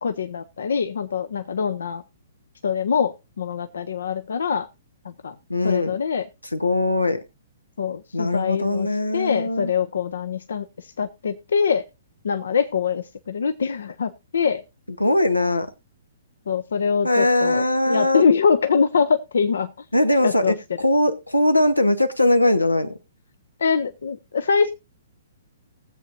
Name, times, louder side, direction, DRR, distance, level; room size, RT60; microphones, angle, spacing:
voice 1, 0.0-2.0 2.6-4.7 5.0-5.3 5.6-6.3 7.8-8.9 9.1-10.6 11.0-11.8 12.2-14.6 16.5-19.7 20.2-20.5 23.6-24.7, left 6 dB, 65° left, 10 dB, 0.6 m, -23 dB
voice 2, 5.5-6.0 6.5-7.2 8.1-9.7 15.0-15.7 17.0-18.2 19.9-22.9, left 1 dB, 90° left, 11 dB, 1.0 m, -20 dB
19.5 x 7.7 x 2.5 m, 0.25 s
figure-of-eight pair, 120°, 0 cm